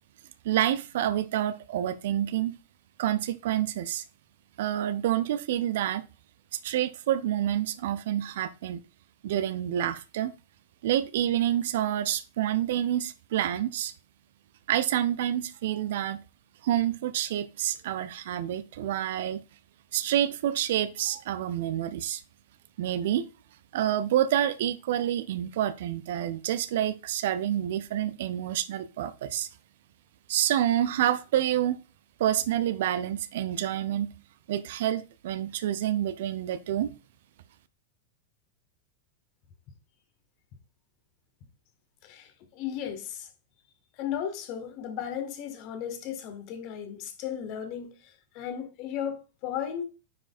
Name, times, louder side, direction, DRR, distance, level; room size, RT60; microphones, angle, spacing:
voice 1, 0.4-2.6 3.0-4.0 4.6-6.0 6.5-8.8 9.2-10.3 10.8-13.9 14.7-16.2 16.6-19.4 19.9-22.2 22.8-23.3 23.7-29.5 30.3-31.8 32.2-34.1 34.5-36.9, right 11 dB, 55° right, 0.5 m, -28 dB
voice 2, 42.0-43.3 44.0-47.9 48.3-49.8, left 9 dB, 45° left, 1.7 m, -35 dB
9.5 x 5.4 x 2.5 m
figure-of-eight pair, 90°, 0 cm